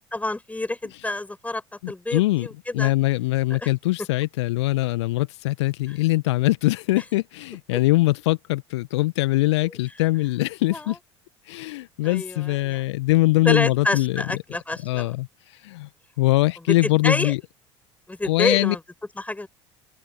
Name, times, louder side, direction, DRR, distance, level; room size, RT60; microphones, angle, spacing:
voice 1, 0.1-1.6 1.9-2.9 3.5-3.7 5.9-6.0 9.6-9.7 10.7-11.0 12.0-12.8 13.4-15.1 16.7-17.3 18.1-18.8 19.1-19.5, left 2 dB, 10° left, 5.7 m, -28 dB
voice 2, 1.8-2.5 2.7-11.0 11.5-14.2 14.8-15.3 15.6-15.9 16.2-17.4 18.2-18.7, left 19 dB, 70° left, 1.3 m, -22 dB
open air
figure-of-eight pair, 65°, 15 cm